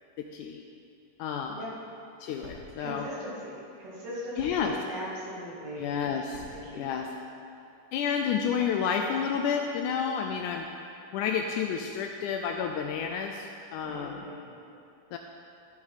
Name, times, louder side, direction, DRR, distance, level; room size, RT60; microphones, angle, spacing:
voice 1, 0.2-0.6 1.2-1.6 2.2-3.1 4.4-4.8 5.8-6.5 6.7-7.1 7.9-10.7 11.1-14.2 15.1-15.2, left 7 dB, 80° left, 3 dB, 1.8 m, -30 dB
sound 1, 1.8-8.3, left 1 dB, 25° right, 3.1 m, -54 dB
voice 2, 2.8-5.9 6.6-6.9 13.8-14.5, equal, 50° right, -7 dB, 3.1 m, -39 dB
14.0 x 8.6 x 4.1 m, 2.6 s
omnidirectional pair, 4.0 m